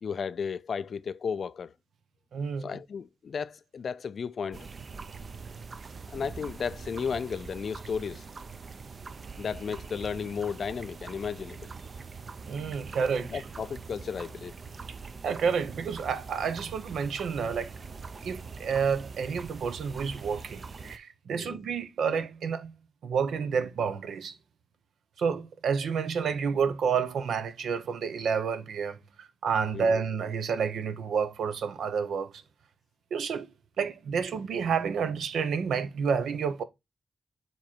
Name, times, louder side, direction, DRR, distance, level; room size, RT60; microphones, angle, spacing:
voice 1, 0.0-1.7 2.6-4.7 6.1-8.2 9.4-11.7 13.3-14.5 21.3-21.6 29.7-30.0, left 6 dB, 60° left, 0.3 m, -34 dB
voice 2, 2.3-2.7 12.5-13.4 15.2-17.7 18.2-22.7 23.0-24.3 25.2-32.3 33.1-33.5 33.8-36.6, right 6 dB, 85° right, 0.7 m, -29 dB
sound 1, 4.5-21.0, right 4 dB, 45° right, 0.5 m, -43 dB
7.2 x 3.0 x 4.4 m
cardioid pair, 105°, 0 cm